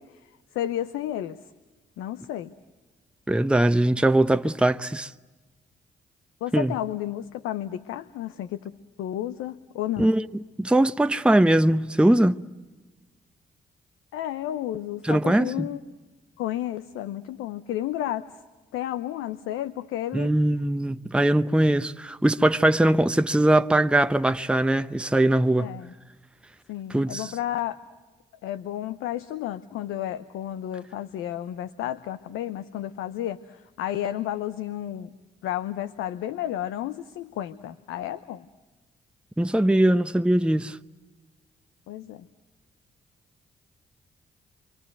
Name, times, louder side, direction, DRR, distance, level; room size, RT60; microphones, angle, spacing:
voice 1, 0.0-1.4 2.0-2.5 6.4-8.7 9.0-10.1 14.1-15.8 16.4-18.4 18.7-20.3 25.6-25.9 26.7-27.8 28.4-35.1 35.4-38.5 41.9-42.3, left 12 dB, 80° left, 0.8 m, -32 dB
voice 2, 3.3-5.1 6.5-6.7 10.0-10.3 10.6-12.4 15.0-15.7 20.1-25.7 26.9-27.3 39.4-40.8, right 1 dB, 5° right, 0.8 m, -21 dB
27.5 x 25.0 x 7.9 m
hypercardioid pair, 45°, 21 cm